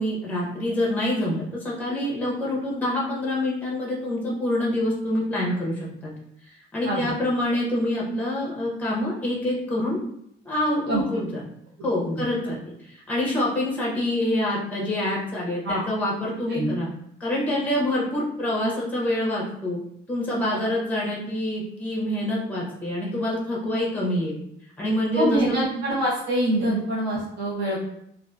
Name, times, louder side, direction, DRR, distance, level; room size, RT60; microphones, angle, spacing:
voice 1, 0.0-6.1 6.7-10.0 10.5-11.4 11.8-12.6 12.9-16.9 17.2-19.8 20.1-24.3 24.8-25.7, left 1 dB, 5° left, -4 dB, 0.6 m, -26 dB
voice 2, 11.8-12.2 15.6-15.8 16.5-16.7 20.5-20.6 23.7-23.8 25.1-27.9, right 1 dB, 60° right, -7 dB, 0.8 m, -25 dB
2.5 x 2.4 x 2.2 m, 0.73 s
cardioid pair, 145°, 21 cm